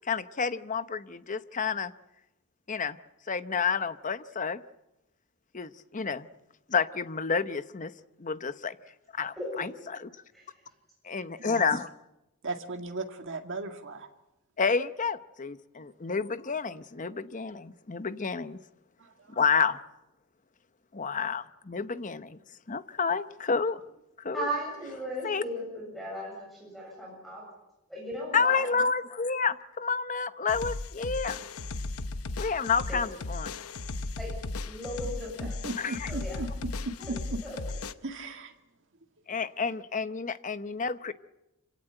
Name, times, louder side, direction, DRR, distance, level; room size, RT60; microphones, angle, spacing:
voice 1, 0.0-1.9 2.7-3.0 3.3-4.6 5.5-6.3 6.7-7.9 8.2-8.8 9.2-10.1 11.0-11.9 14.6-18.6 19.3-19.8 20.9-22.4 22.7-23.8 24.2-24.5 25.2-25.4 28.3-31.4 32.4-33.5 35.8-36.1 39.3-41.1, left 5 dB, 35° left, 13 dB, 0.8 m, -30 dB
voice 2, 12.4-14.1 19.3-19.4 35.4-36.5 36.9-37.4 38.0-38.5, right 2 dB, 55° right, 5 dB, 2.1 m, -36 dB
voice 3, 24.3-27.4 27.9-28.6 32.9-33.0 34.2-34.3 34.6-35.5 36.1-36.4 37.0-37.1 37.4-37.6, equal, ahead, -2 dB, 7.3 m, -37 dB
sound 1, 30.5-37.9, left 3 dB, 75° left, 0.9 m, -36 dB
26.5 x 17.0 x 9.0 m, 0.96 s
head